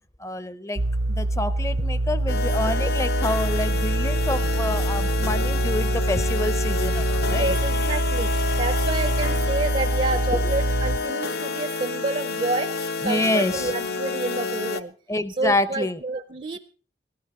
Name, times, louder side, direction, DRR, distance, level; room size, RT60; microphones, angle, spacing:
voice 1, 0.2-0.8 1.1-7.6 10.3-10.4 13.0-13.7 15.1-16.0, left 1 dB, 15° left, 0.6 m, -27 dB
sound 1, 0.8-11.0, right 1 dB, 85° right, 0.7 m, -25 dB
sound 2, 2.3-14.8, left 4 dB, 60° left, 0.7 m, -29 dB
sound 3, 4.4-11.2, left 1 dB, 75° left, 7.6 m, -47 dB
voice 2, 7.3-14.9 15.4-16.6, right 2 dB, 40° right, 0.6 m, -29 dB
17.0 x 13.5 x 4.3 m
head